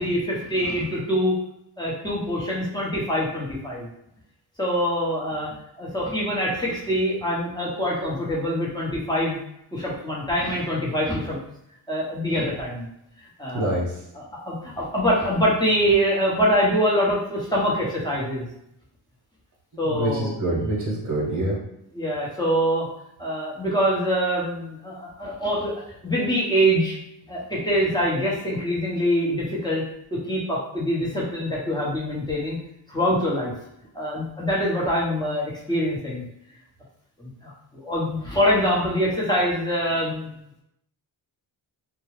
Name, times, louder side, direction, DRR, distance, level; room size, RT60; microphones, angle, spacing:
voice 1, 0.0-1.4 1.8-3.9 4.6-9.4 9.7-11.4 11.9-12.9 13.4-13.8 14.1-18.5 19.8-20.3 21.9-22.9 23.2-27.0 27.3-29.8 30.1-32.6 32.9-33.5 33.9-36.2 37.2-40.3, equal, 10° left, -5 dB, 1.0 m, -24 dB
voice 2, 13.5-13.9 19.9-21.6, right 1 dB, 40° right, -3 dB, 1.1 m, -25 dB
2.3 x 2.2 x 3.2 m, 0.79 s
cardioid pair, 60°, 48 cm